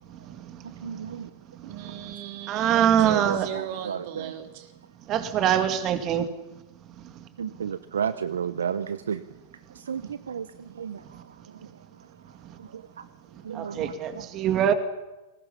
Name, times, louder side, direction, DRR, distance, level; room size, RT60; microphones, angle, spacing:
voice 1, 0.8-1.3 3.0-4.3 7.4-9.2 9.9-10.0 10.3-10.5 10.8-11.0 12.7-12.8 13.4-13.9, right 7 dB, 80° right, 15 dB, 0.7 m, -31 dB
voice 2, 1.6-4.7, right 10 dB, 55° right, 5 dB, 3.6 m, -37 dB
voice 3, 2.5-3.5 5.1-6.2 13.5-14.7, right 10 dB, 40° right, 8 dB, 2.1 m, -23 dB
29.5 x 20.5 x 5.7 m, 1.1 s
hypercardioid pair, 100°, 0 cm